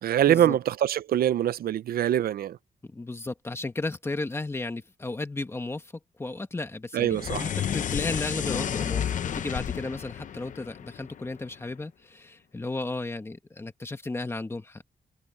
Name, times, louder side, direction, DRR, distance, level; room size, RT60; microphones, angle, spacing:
voice 1, 0.0-2.6 6.9-7.5, right 11 dB, 75° right, 0.5 m, -24 dB
voice 2, 2.8-5.9 6.2-9.0 9.3-14.9, left 2 dB, 15° left, 1.7 m, -34 dB
sound 1, 7.1-11.5, left 9 dB, 55° left, 0.7 m, -31 dB
wide cardioid pair, 150°, 15 cm